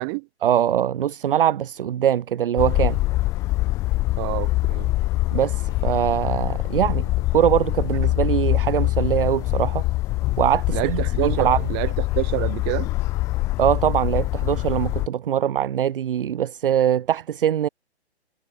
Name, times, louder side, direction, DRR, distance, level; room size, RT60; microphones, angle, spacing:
voice 1, 0.4-3.0 5.3-9.9 10.4-11.7 13.6-17.7, right 10 dB, 55° right, 0.8 m, -22 dB
sound 1, 2.6-15.1, left 18 dB, 10° left, 0.6 m, -24 dB
voice 2, 4.2-4.9 10.7-12.9, right 33 dB, 25° right, 2.1 m, -27 dB
hypercardioid pair, 155°, 33 cm